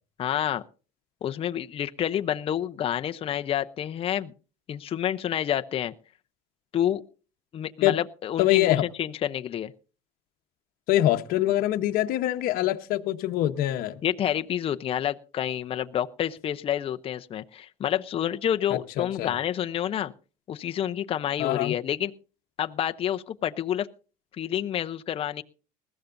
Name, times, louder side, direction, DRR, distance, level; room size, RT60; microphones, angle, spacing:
voice 1, 0.2-0.6 1.2-4.3 4.7-5.9 6.7-7.0 7.5-9.7 14.0-20.1 20.5-22.1 22.6-23.9 24.4-25.4, left 10 dB, 35° left, 0.6 m, -28 dB
voice 2, 8.4-8.8 10.9-14.0 19.0-19.3 21.4-21.7, left 14 dB, 60° left, 1.0 m, -24 dB
20.0 x 14.5 x 2.6 m
cardioid pair, 120°, 17 cm